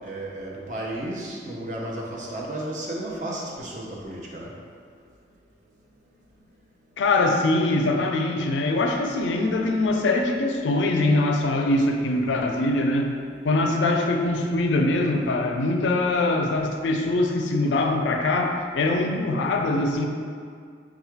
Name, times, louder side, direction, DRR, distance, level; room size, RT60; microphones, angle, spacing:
voice 1, 0.0-4.5, right 1 dB, 40° right, -3 dB, 0.6 m, -33 dB
voice 2, 7.0-13.2 13.4-20.1, left 2 dB, 85° left, 3 dB, 0.4 m, -23 dB
3.6 x 2.4 x 4.5 m, 2.1 s
head